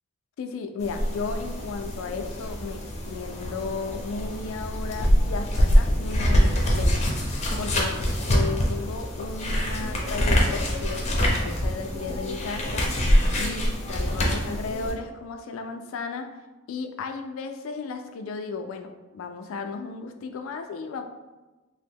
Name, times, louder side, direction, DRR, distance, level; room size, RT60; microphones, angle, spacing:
voice 1, 0.4-7.1 7.6-12.9 13.3-16.3 16.7-21.0, left 4 dB, 85° left, 7 dB, 0.3 m, -34 dB
sound 1, 0.8-14.9, equal, 35° left, 0.5 m, -24 dB
2.9 x 2.0 x 3.4 m, 1.2 s
head